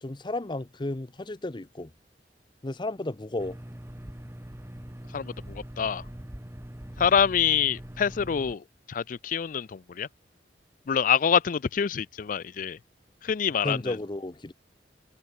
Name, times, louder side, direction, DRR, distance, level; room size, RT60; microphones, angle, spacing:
voice 1, 0.0-1.9 2.6-3.6 13.6-14.5, left 2 dB, 25° left, 0.8 m, -33 dB
sound 1, 3.4-8.6, equal, 15° right, 1.2 m, -42 dB
voice 2, 5.1-6.0 7.0-10.1 10.9-12.8 13.2-14.0, left 7 dB, 50° left, 0.4 m, -26 dB
head